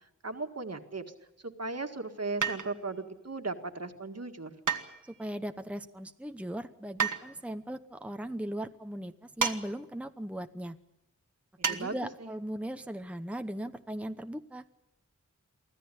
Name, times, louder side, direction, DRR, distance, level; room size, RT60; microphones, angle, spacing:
voice 1, 0.2-1.0 1.4-4.6 11.6-12.3, right 3 dB, 55° right, 6 dB, 1.9 m, -37 dB
sound 1, 2.4-3.0 4.7-5.4 7.0-7.2 9.4-9.6 9.9-10.0 11.6-11.8 12.2-12.3, right 6 dB, 90° right, 1.5 m, -31 dB
voice 2, 5.1-10.8 11.7-14.6, right 1 dB, 5° right, 8 dB, 0.9 m, -38 dB
24.5 x 15.0 x 9.9 m, 0.89 s
wide cardioid pair, 60°, 30 cm